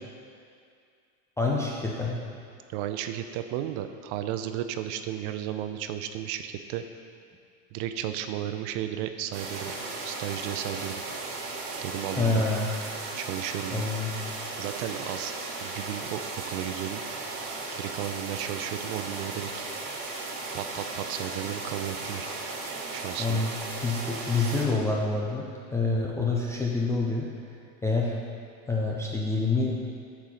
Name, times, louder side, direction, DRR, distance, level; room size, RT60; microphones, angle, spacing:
voice 1, 1.4-2.2 12.2-12.7 13.7-14.1 23.2-23.5 23.8-27.3 27.8-28.2 28.7-29.8, left 3 dB, 5° left, -4 dB, 0.3 m, -27 dB
voice 2, 2.7-6.8 7.7-9.7 10.0-11.0 11.8-12.4 13.1-13.9 14.6-15.3 15.6-16.2 16.5-17.0 17.8-19.5 20.5-22.3 22.9-23.5, right 11 dB, 45° right, 8 dB, 0.5 m, -34 dB
sound 1, 9.3-24.7, right 3 dB, 80° right, 1.6 m, -36 dB
8.9 x 4.7 x 5.5 m, 2.3 s
supercardioid pair, 125°, 44 cm